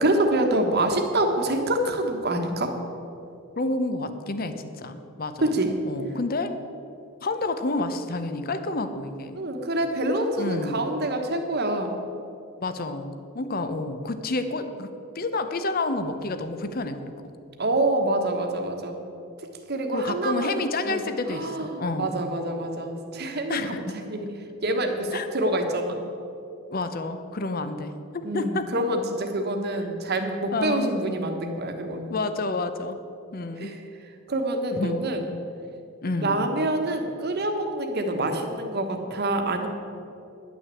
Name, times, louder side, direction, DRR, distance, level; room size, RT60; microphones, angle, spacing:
voice 1, 0.0-2.7 5.4-5.7 9.3-11.9 17.6-19.0 19.7-24.3 24.6-26.0 28.2-32.2 33.6-33.8 34.3-35.2 36.2-39.7, right 1 dB, 45° right, 4 dB, 1.2 m, -26 dB
voice 2, 3.6-5.6 5.8-6.5 7.2-9.4 10.4-10.8 12.6-14.9 15.1-17.1 19.9-22.1 23.5-24.0 25.1-25.3 26.7-27.9 28.3-28.7 30.5-31.0 32.1-33.0 33.3-33.7 34.7-35.0 36.0-36.4, left 2 dB, 40° left, 9 dB, 0.7 m, -29 dB
10.5 x 6.1 x 8.3 m, 2.7 s
head